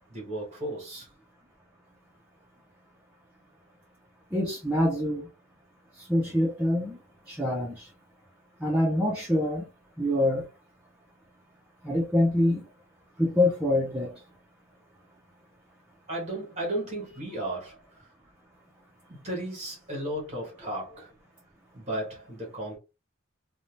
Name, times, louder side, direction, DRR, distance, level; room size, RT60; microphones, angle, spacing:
voice 1, 0.1-1.1 16.1-18.1 19.1-21.1 21.7-22.8, right 1 dB, 35° right, 1.2 m, -34 dB
voice 2, 4.3-5.3 6.0-7.0 7.3-7.9 8.6-9.7 10.0-10.5 11.8-12.6 13.2-14.1, left 1 dB, 5° right, 0.4 m, -25 dB
2.7 x 2.1 x 3.1 m
head